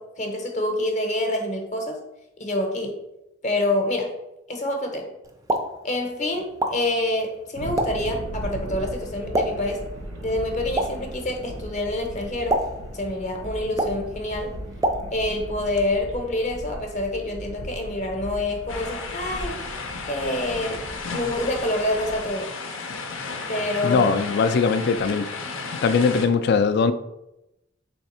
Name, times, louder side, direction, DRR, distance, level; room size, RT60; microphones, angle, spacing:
voice 1, 0.0-2.0 2.4-3.0 3.4-4.2 4.5-5.1 5.8-9.8 10.2-12.6 12.9-14.6 15.1-22.5 23.5-24.1, left 1 dB, 40° left, 0.7 m, -27 dB
Explosion, 5.2-15.5, right 1 dB, 20° right, 0.4 m, -31 dB
sound 1, 7.5-22.4, right 1 dB, 85° right, 0.9 m, -37 dB
ocean light waves sea beach stereo, 18.7-26.3, left 4 dB, 90° left, 0.6 m, -33 dB
voice 2, 23.8-25.3 25.8-26.9, left 5 dB, 55° left, 0.3 m, -20 dB
3.5 x 3.2 x 4.2 m
head